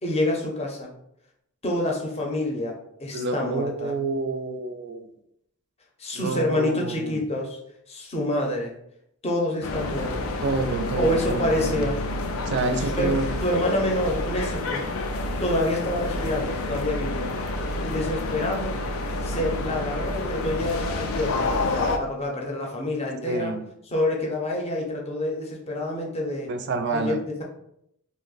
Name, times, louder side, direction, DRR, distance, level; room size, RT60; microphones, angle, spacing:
voice 1, 0.0-0.9 1.6-3.9 6.0-7.6 7.9-8.8 9.2-10.4 11.0-12.0 12.9-13.1 13.4-14.9 15.4-17.3 17.8-18.8 19.2-23.6 23.9-26.5 26.9-27.4, left 1 dB, 30° left, 0 dB, 0.6 m, -27 dB
voice 2, 3.1-5.1 6.1-7.3 10.4-11.8 12.5-13.3 23.3-23.6 26.5-27.2, right 3 dB, 55° right, 7 dB, 0.4 m, -28 dB
sound 1, 9.6-22.0, left 2 dB, 75° left, 0.4 m, -29 dB
2.8 x 2.1 x 3.9 m, 0.76 s
head